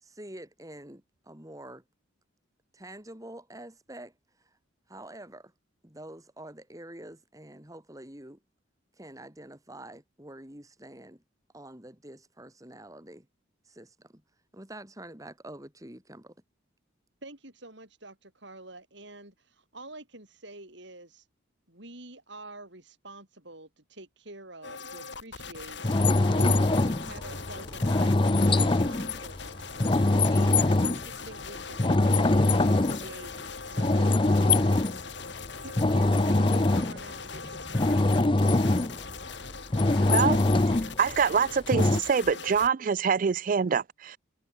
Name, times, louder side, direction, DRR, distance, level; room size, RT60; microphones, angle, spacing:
voice 1, 0.0-1.8 2.7-4.1 4.9-5.5 5.8-8.4 9.0-11.2 11.5-13.3 13.7-14.2 14.5-16.3, right 1 dB, 15° right, 3.0 m, -46 dB
voice 2, 17.2-21.3 21.7-28.2 28.5-32.5 32.8-33.3 33.6-35.3 35.6-38.5, right 2 dB, 60° right, 6.2 m, -47 dB
sound 1, 24.6-42.7, left 5 dB, 60° left, 4.0 m, -41 dB
sound 2, 25.8-31.1 31.5-33.5 33.8-35.0 35.4-39.0 39.5-41.0 41.7-42.0, left 2 dB, 25° left, 0.6 m, -23 dB
voice 3, 40.0-40.4 41.0-44.2, right 6 dB, 40° right, 0.3 m, -25 dB
head